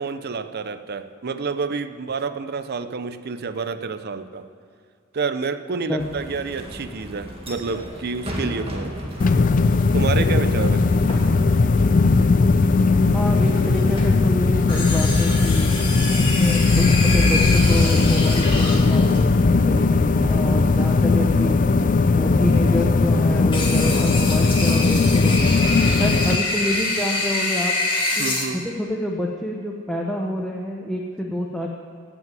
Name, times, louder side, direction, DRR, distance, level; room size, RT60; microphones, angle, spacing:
voice 1, 0.0-4.5 5.1-9.0 9.9-10.8 28.2-28.6, right 4 dB, 50° right, 11 dB, 0.6 m, -28 dB
sound 1, 6.0-21.5, equal, 30° right, 2.0 m, -37 dB
sound 2, 9.2-26.4, left 3 dB, 40° left, 0.4 m, -18 dB
sound 3, 9.2-9.8 11.1-11.7 13.7-14.2 14.7-19.2 23.5-28.4, left 2 dB, 25° left, 2.3 m, -26 dB
voice 2, 13.1-15.7 16.4-21.6 22.1-27.7 28.2-31.7, left 1 dB, 5° left, -1 dB, 0.8 m, -27 dB
16.5 x 6.1 x 9.1 m, 2.3 s
head